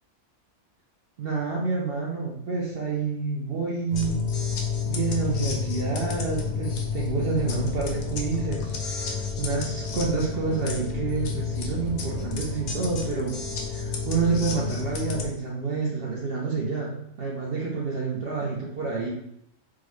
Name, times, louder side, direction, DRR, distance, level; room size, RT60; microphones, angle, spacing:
voice 1, 1.2-4.2 4.9-13.4 13.7-19.1, right 4 dB, 65° right, -3 dB, 0.6 m, -28 dB
sound 1, 3.9-15.3, left 5 dB, 65° left, 0.8 m, -30 dB
3.7 x 2.0 x 3.1 m, 0.77 s
omnidirectional pair, 1.5 m